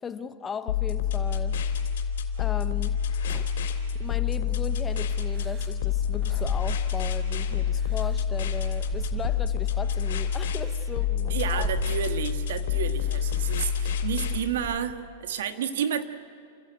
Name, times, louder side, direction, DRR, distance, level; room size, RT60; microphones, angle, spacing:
voice 1, 0.0-1.6 2.4-3.0 4.0-11.7, left 6 dB, 15° left, 10 dB, 0.9 m, -37 dB
sound 1, 0.7-14.4, left 7 dB, 70° left, 2.8 m, -27 dB
sound 2, 3.3-4.5 5.3-7.3 7.7-9.9 10.6-10.7 11.3-12.5 13.0-13.3 13.8-15.1, right 6 dB, 20° right, 0.6 m, -40 dB
voice 2, 11.3-16.0, right 8 dB, 70° right, 7 dB, 1.6 m, -31 dB
29.0 x 14.0 x 9.1 m, 2.4 s
supercardioid pair, 150°, 0 cm